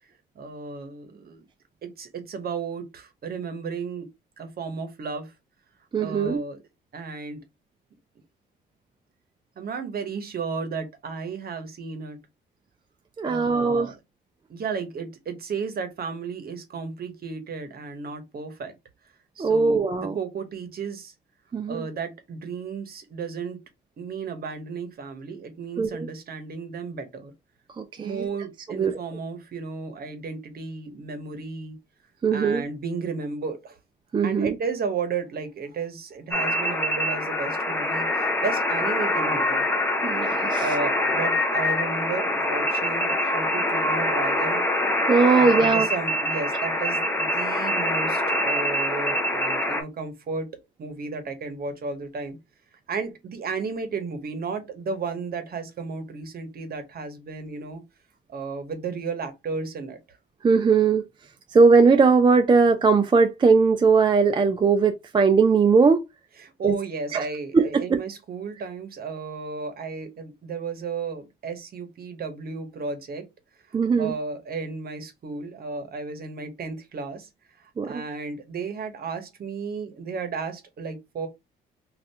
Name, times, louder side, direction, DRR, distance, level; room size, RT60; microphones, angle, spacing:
voice 1, 0.3-1.4 1.8-4.1 4.4-5.3 6.0-6.6 6.9-7.4 9.6-12.2 13.3-14.0 14.5-18.7 19.4-19.8 20.1-21.1 21.7-23.6 24.0-27.3 28.0-31.8 32.3-33.8 34.2-39.7 40.6-44.7 45.3-50.5 50.8-52.4 52.9-57.8 58.3-60.0 66.4-73.3 73.7-77.3 77.6-81.3, right 4 dB, 50° right, 0.9 m, -33 dB
voice 2, 5.9-6.4 13.2-13.9 19.4-20.1 21.5-21.9 25.8-26.1 27.8-28.3 28.7-29.0 32.2-32.6 34.1-34.6 40.0-40.6 45.1-45.9 60.4-61.0 61.5-66.0 66.6-66.8 67.1-67.3 67.5-68.0 73.7-74.2 77.8-78.0, right 4 dB, 25° right, 0.4 m, -19 dB
sound 1, 36.3-49.8, left 1 dB, 10° left, 0.8 m, -25 dB
2.6 x 2.4 x 3.3 m
cardioid pair, 90°, 20 cm